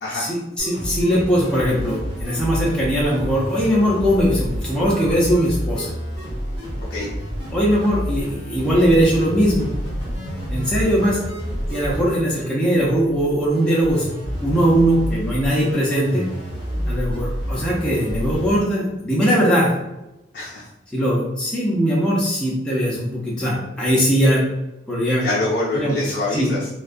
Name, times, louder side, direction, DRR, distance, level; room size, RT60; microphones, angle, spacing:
voice 1, 0.1-5.9 7.5-9.7 10.5-11.2 11.7-14.1 14.4-16.2 16.9-19.7 20.9-24.4 24.9-25.2 25.7-26.0 26.3-26.5, equal, 5° left, -7 dB, 0.5 m, -20 dB
sound 1, 0.6-18.6, equal, 20° right, 1.2 m, -29 dB
voice 2, 20.3-20.7 25.2-26.7, left 2 dB, 55° left, -8 dB, 0.5 m, -25 dB
2.2 x 2.2 x 2.5 m, 0.94 s
head